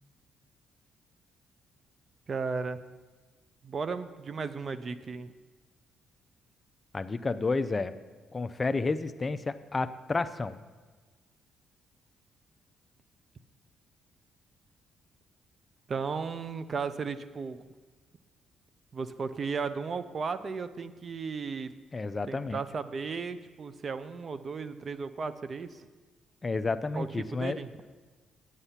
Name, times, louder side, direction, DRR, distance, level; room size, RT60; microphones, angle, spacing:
voice 1, 2.3-2.8 3.6-5.3 15.9-17.6 18.9-21.7 22.3-25.9 27.0-27.7, right 5 dB, 45° right, 12 dB, 0.5 m, -35 dB
voice 2, 6.9-8.0 8.3-10.6 21.9-22.6 26.4-27.6, left 3 dB, 25° left, 12 dB, 0.5 m, -31 dB
9.0 x 8.2 x 5.7 m, 1.3 s
cardioid pair, 90°, 0 cm